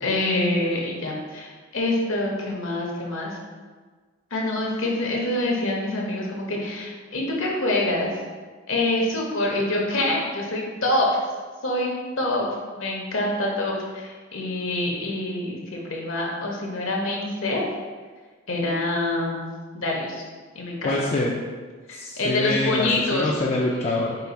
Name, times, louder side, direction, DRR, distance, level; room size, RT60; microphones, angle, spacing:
voice 1, 0.0-3.4 4.3-8.1 8.7-11.1 11.6-11.9 12.2-12.5 12.8-17.6 18.5-19.5 19.7-20.2 20.5-21.0 21.9-23.3, left 2 dB, 70° left, -1 dB, 0.9 m, -26 dB
voice 2, 20.8-21.3 21.9-24.2, left 2 dB, 30° left, -3 dB, 0.3 m, -25 dB
5.4 x 2.4 x 4.0 m, 1.4 s
head